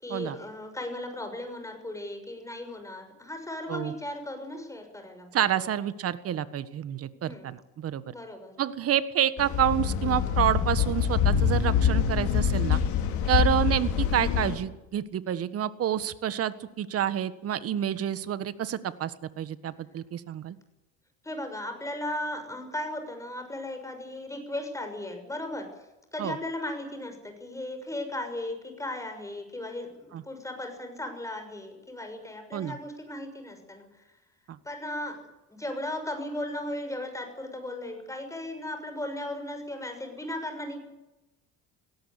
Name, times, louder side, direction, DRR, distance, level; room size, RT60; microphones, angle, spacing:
voice 1, 0.0-5.7 7.1-7.5 8.1-8.6 13.3-13.4 21.2-25.7 26.1-33.9 34.6-35.2 35.5-40.8, left 1 dB, 10° left, 6 dB, 6.5 m, -36 dB
voice 2, 5.3-8.1 8.6-12.8 13.3-20.6 26.2-26.4 30.1-30.2 32.5-32.8 34.5-34.6, right 10 dB, 50° right, 14 dB, 1.5 m, -28 dB
sound 1, 9.4-14.6, left 8 dB, 65° left, 4.5 m, -25 dB
17.5 x 17.5 x 10.0 m, 0.98 s
supercardioid pair, 100°, 31 cm